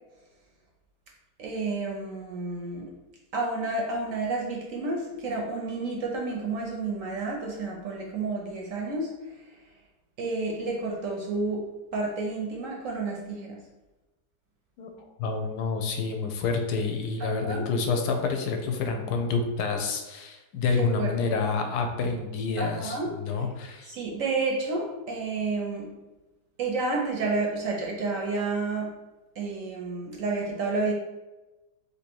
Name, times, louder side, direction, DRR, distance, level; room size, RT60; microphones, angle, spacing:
voice 1, 1.4-2.9 3.3-9.1 10.2-11.6 11.9-13.5 17.2-17.7 20.8-21.1 22.6-23.1 23.9-25.9 26.6-28.9 29.4-30.9, right 3 dB, 65° right, 0 dB, 0.9 m, -30 dB
voice 2, 14.8-23.9, left 4 dB, 80° left, 4 dB, 1.1 m, -28 dB
3.1 x 2.7 x 4.4 m, 1.1 s
omnidirectional pair, 1.8 m